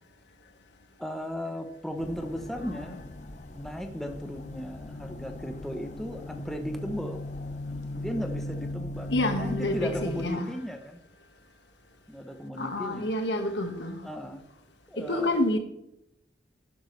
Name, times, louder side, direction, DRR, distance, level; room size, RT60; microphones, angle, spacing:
voice 1, 1.0-3.0 3.5-7.2 7.9-11.0 12.1-13.1 14.0-14.4 14.9-15.4, equal, ahead, 5 dB, 0.8 m, -36 dB
sound 1, 2.0-10.3, left 1 dB, 40° left, 0.8 m, -38 dB
voice 2, 9.1-10.5 12.6-14.1 15.0-15.6, left 1 dB, 70° left, 5 dB, 1.6 m, -28 dB
11.5 x 10.5 x 3.2 m, 0.81 s
head